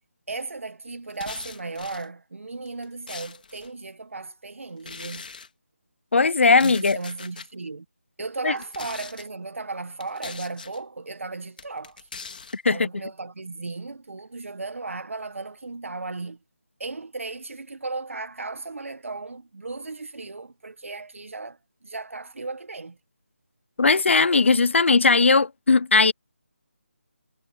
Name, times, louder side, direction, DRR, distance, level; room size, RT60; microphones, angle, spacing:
voice 1, 0.3-5.3 6.6-7.8 8.2-12.1 12.7-16.4 16.8-23.0, right 3 dB, 70° right, 1.5 m, -35 dB
sound 1, 1.1-2.1 2.7-3.7 4.8-5.5 6.4-7.5 8.5-9.3 10.0-10.8 11.6-12.6, left 5 dB, 40° left, 3.2 m, -41 dB
voice 2, 6.1-7.0 8.4-8.5 12.5-12.9 23.8-26.1, left 4 dB, 60° left, 0.6 m, -18 dB
figure-of-eight pair, 175°, 7 cm